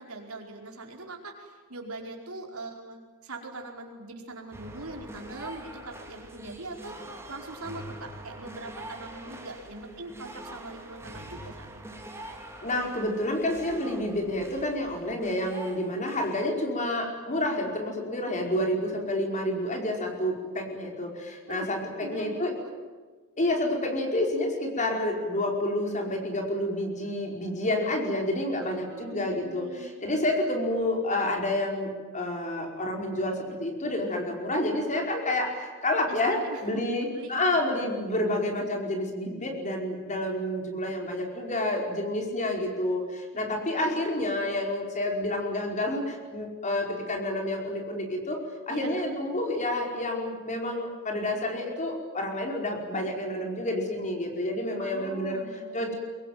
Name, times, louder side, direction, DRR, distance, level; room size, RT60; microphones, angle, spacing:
voice 1, 0.0-12.0 21.5-21.7 22.0-22.7 28.6-29.9 36.1-37.6 43.3-44.0 48.7-49.2 54.8-56.0, right 2 dB, 70° right, 2 dB, 4.9 m, -42 dB
sound 1, 4.5-16.5, right 1 dB, 10° right, 3.3 m, -44 dB
voice 2, 12.6-22.5 23.4-48.4 48.7-55.4 55.7-56.0, left 1 dB, 35° left, 2 dB, 5.1 m, -29 dB
24.0 x 22.5 x 9.5 m, 1.4 s
head